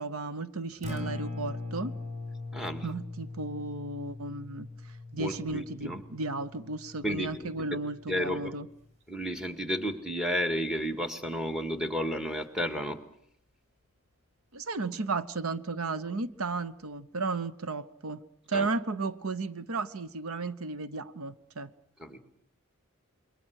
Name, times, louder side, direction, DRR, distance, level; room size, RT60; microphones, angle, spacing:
voice 1, 0.0-1.9 2.8-8.7 14.5-18.2 18.5-21.7, right 3 dB, 80° right, 13 dB, 0.9 m, -34 dB
Acoustic guitar, 0.7-8.9, left 2 dB, 35° right, 5.5 m, -41 dB
voice 2, 2.5-2.8 5.2-6.0 7.0-7.7 8.1-8.5 9.1-13.0 18.5-18.7 22.0-22.2, equal, 5° right, 7 dB, 1.9 m, -32 dB
28.0 x 22.5 x 6.5 m, 0.67 s
head